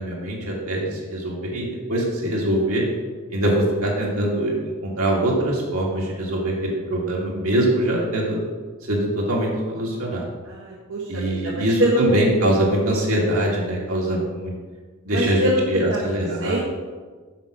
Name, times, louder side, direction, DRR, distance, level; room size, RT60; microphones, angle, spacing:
voice 1, 0.0-2.8 3.3-4.5 4.8-8.4 8.9-10.2 11.1-14.5 15.0-16.6, right 1 dB, 85° right, -3 dB, 2.3 m, -23 dB
voice 2, 10.4-12.0 15.1-15.6 15.9-16.6, equal, 65° right, -4 dB, 1.2 m, -25 dB
7.4 x 4.9 x 6.4 m, 1.4 s
head